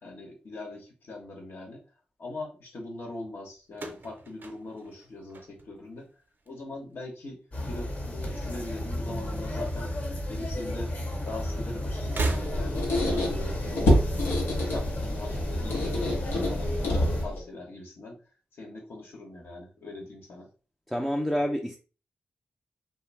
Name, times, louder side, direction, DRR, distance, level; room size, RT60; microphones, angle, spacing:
voice 1, 0.0-1.8 2.2-6.1 6.5-7.4 7.7-9.9 10.3-10.9 11.2-14.0 14.6-18.2 18.6-20.5, left 2 dB, 70° left, 1.0 m, -41 dB
sound 1, 3.7-6.0 6.3-6.9 8.0-9.0 9.3-9.4 10.5-10.6 12.0-13.0, right 3 dB, 55° right, 0.6 m, -36 dB
sound 2, 7.5-17.3, left 1 dB, 45° left, 1.0 m, -33 dB
Squeak, 12.3-17.4, left 1 dB, 85° left, 0.7 m, -27 dB
voice 2, 20.9-21.8, equal, 5° left, 0.4 m, -28 dB
2.6 x 2.0 x 3.1 m
supercardioid pair, 40°, 4 cm